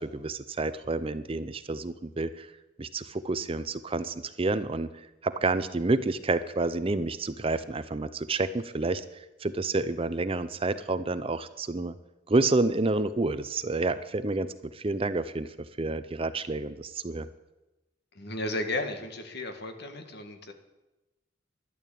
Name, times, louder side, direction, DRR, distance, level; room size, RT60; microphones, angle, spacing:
voice 1, 0.0-2.5 2.8-4.9 5.2-9.0 9.4-11.9 12.3-15.5 15.8-17.3, right 3 dB, 30° right, 13 dB, 0.6 m, -29 dB
voice 2, 18.2-20.5, left 2 dB, 55° left, 6 dB, 1.8 m, -34 dB
12.0 x 11.0 x 8.5 m, 1.0 s
head